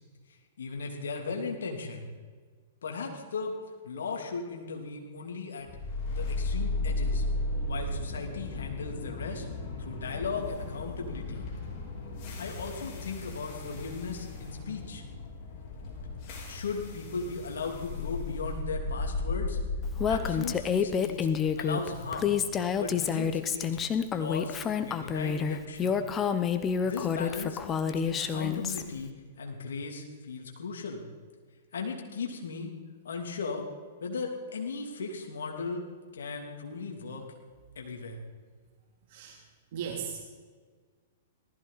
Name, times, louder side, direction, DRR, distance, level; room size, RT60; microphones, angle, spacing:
voice 1, 0.6-2.1 2.8-3.6 3.8-5.7 6.1-7.2 7.7-9.5 9.8-11.5 12.4-15.0 16.5-19.6 20.1-21.3 21.5-22.4 22.8-23.8 24.1-26.0 26.8-31.0 31.7-32.7 33.0-33.7 34.0-35.8 36.1-37.3 37.7-38.2, left 4 dB, 75° left, 1 dB, 3.1 m, -37 dB
sound 1, 5.7-23.8, left 2 dB, 45° left, 4.0 m, -35 dB
Female speech woman speaking, 20.0-28.8, left 7 dB, 25° left, 1.0 m, -28 dB
voice 2, 39.7-40.2, right 7 dB, 50° right, -2 dB, 3.2 m, -36 dB
19.0 x 15.0 x 4.3 m, 1.6 s
hypercardioid pair, 115°, 0 cm